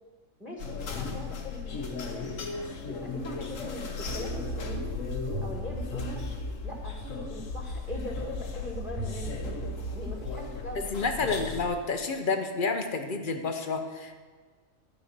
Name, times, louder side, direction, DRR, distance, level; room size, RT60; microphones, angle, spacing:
voice 1, 0.4-2.3 2.9-4.9 5.4-6.2 6.6-9.5 9.9-10.9, equal, ahead, 0 dB, 1.6 m, -41 dB
sound 1, 0.6-11.7, left 5 dB, 65° left, 1.4 m, -37 dB
sound 2, 4.0-7.0 7.5-10.5, right 1 dB, 60° right, 1.7 m, -37 dB
voice 2, 10.9-14.1, left 4 dB, 40° left, 6 dB, 1.0 m, -29 dB
13.0 x 5.4 x 8.0 m, 1.4 s
omnidirectional pair, 1.4 m